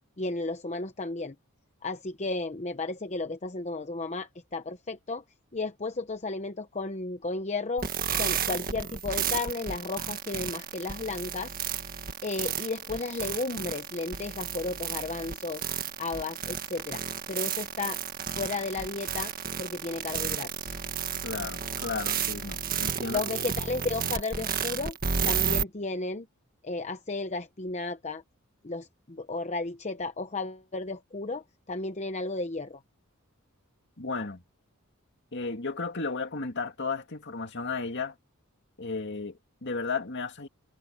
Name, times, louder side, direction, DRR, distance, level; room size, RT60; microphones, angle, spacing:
voice 1, 0.2-1.3 1.8-5.2 5.5-11.5 12.2-15.7 16.0-17.0 17.3-18.0 18.3-19.3 19.6-20.7 23.1-25.0 25.2-26.3 26.6-28.2 28.6-32.8, left 3 dB, 30° left, 0.9 m, -33 dB
sound 1, 7.8-25.6, right 7 dB, 40° right, 1.7 m, -32 dB
voice 2, 21.2-23.2 34.0-34.4 35.3-38.1 38.8-40.5, left 4 dB, 55° left, 2.3 m, -34 dB
head